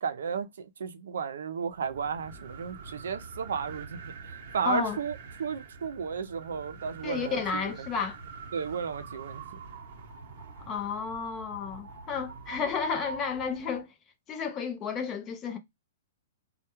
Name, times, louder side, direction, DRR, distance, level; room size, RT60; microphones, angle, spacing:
voice 1, 0.0-4.0 4.5-7.6 8.5-9.4, right 6 dB, 85° right, 0.4 m, -33 dB
sound 1, 1.7-13.8, right 4 dB, 45° right, 0.8 m, -45 dB
voice 2, 4.6-5.0 7.0-8.2 10.7-13.9 14.3-15.6, left 6 dB, 20° left, 0.5 m, -32 dB
2.2 x 2.1 x 2.8 m
hypercardioid pair, 155°, 0 cm